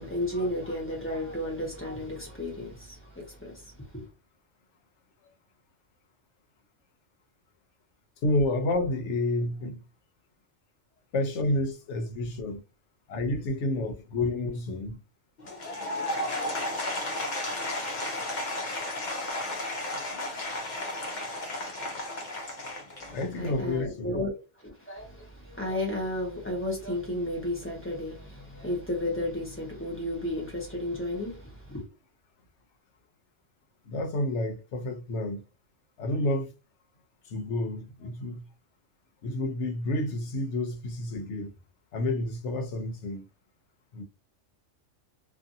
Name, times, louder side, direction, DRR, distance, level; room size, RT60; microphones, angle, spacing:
voice 1, 0.0-4.0 23.4-24.3 24.6-31.8, left 1 dB, 10° left, 0.9 m, -33 dB
voice 2, 8.2-9.8 11.1-12.6 13.1-15.0 23.1-24.2 33.9-35.4 36.0-36.5 37.3-38.4 39.2-41.5 41.9-43.3 43.9-44.0, left 2 dB, 70° left, 1.0 m, -30 dB
Applause / Crowd, 15.4-23.6, left 1 dB, 45° left, 0.7 m, -33 dB
2.6 x 2.6 x 2.6 m
omnidirectional pair, 1.3 m